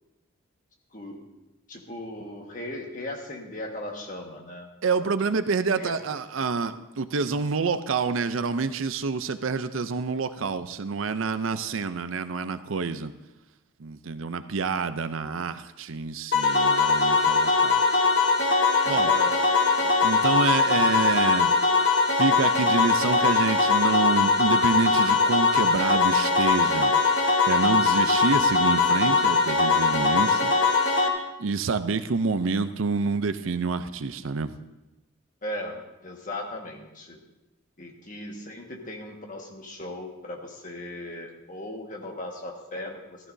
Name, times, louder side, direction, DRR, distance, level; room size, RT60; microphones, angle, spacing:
voice 1, 0.9-1.2 1.7-4.7 5.0-5.1 5.7-6.0 6.4-6.5 18.9-19.4 19.8-19.9 35.4-37.2 37.8-43.2, left 1 dB, 40° left, 1 dB, 1.6 m, -37 dB
voice 2, 4.8-13.1 13.8-17.8 18.9-19.1 20.0-21.5 22.2-26.9 27.5-30.5 31.4-34.5, right 4 dB, 80° right, 11 dB, 0.6 m, -27 dB
sound 1, 16.3-31.1, left 4 dB, 60° left, 1.4 m, -21 dB
15.5 x 13.5 x 2.7 m, 0.99 s
head